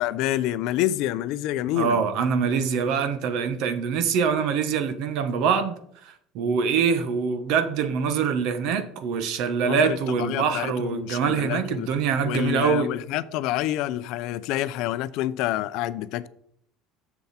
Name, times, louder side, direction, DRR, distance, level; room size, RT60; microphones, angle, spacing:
voice 1, 0.0-2.0 6.4-6.5 9.6-11.9 12.2-16.3, left 14 dB, 60° left, 0.5 m, -28 dB
voice 2, 1.7-5.7 6.0-12.9, right 6 dB, 60° right, 1.2 m, -24 dB
10.5 x 7.1 x 4.3 m
cardioid pair, 160°, 0 cm